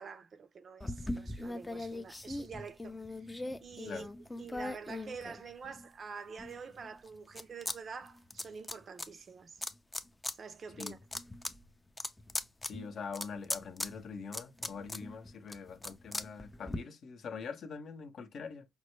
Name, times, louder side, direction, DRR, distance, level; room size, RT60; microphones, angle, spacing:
voice 1, 0.0-9.6 10.4-11.0, right 5 dB, 50° right, 0.5 m, -47 dB
sound 1, 0.8-5.9 6.4-7.8 8.0-9.1 9.6-10.3 10.7-16.8, left 2 dB, 15° left, 0.4 m, -40 dB
voice 2, 12.7-18.7, left 5 dB, 65° left, 0.8 m, -43 dB
5.2 x 2.1 x 3.1 m
cardioid pair, 90°, 0 cm